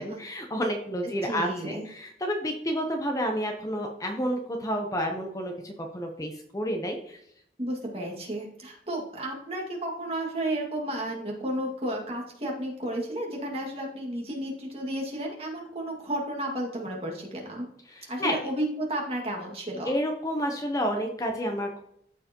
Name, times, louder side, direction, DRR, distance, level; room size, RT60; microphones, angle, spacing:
voice 1, 0.0-7.2 17.9-18.4 19.8-21.8, equal, 20° left, 3 dB, 0.7 m, -30 dB
voice 2, 1.2-1.9 7.6-17.7 18.1-20.0, right 1 dB, 35° right, -1 dB, 2.0 m, -32 dB
13.5 x 4.7 x 2.9 m, 0.71 s
head